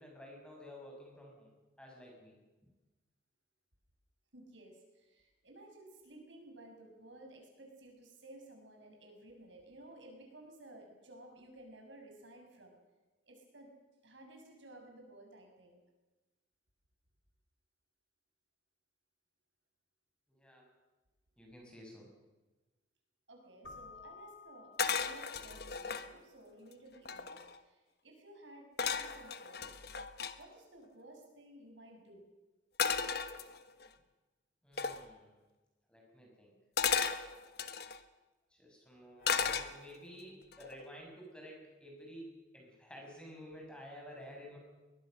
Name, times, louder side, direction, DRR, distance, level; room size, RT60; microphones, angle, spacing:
voice 1, 0.0-2.4 20.3-20.7 21.4-22.1 34.6-35.4 35.9-36.5 38.5-44.6, equal, 5° left, -1 dB, 6.6 m, -52 dB
voice 2, 4.3-12.8 13.3-13.7 14.0-15.8 23.3-29.7 30.4-32.2, right 1 dB, 80° right, 2 dB, 6.5 m, -55 dB
Keyboard (musical), 23.6-25.5, left 4 dB, 85° left, 2.3 m, -54 dB
sound 1, 24.8-26.1 26.7-26.8 27.0-27.6 28.8-30.3 32.8-33.9 34.8-35.0 36.8-38.0 39.2-40.1 40.5-40.9, left 6 dB, 60° left, 1.4 m, -35 dB
22.5 x 21.0 x 6.6 m, 1.1 s
head